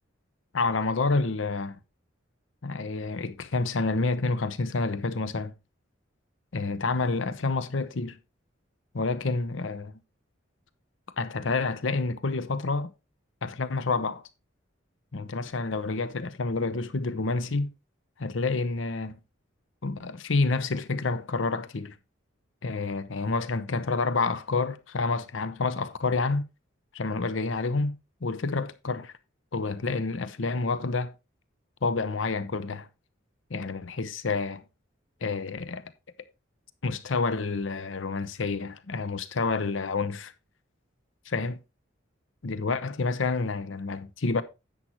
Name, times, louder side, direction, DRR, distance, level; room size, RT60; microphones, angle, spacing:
voice 1, 0.5-1.8 2.6-5.5 6.5-8.2 8.9-9.9 11.2-12.9 13.4-14.2 15.1-17.7 18.2-19.2 19.8-22.0 22.6-26.4 26.9-29.1 29.5-31.1 31.8-32.9 33.5-34.6 35.2-35.8 36.8-40.3 41.3-41.6 42.4-44.4, left 3 dB, 75° left, 0.7 m, -28 dB
10.5 x 8.6 x 3.0 m
head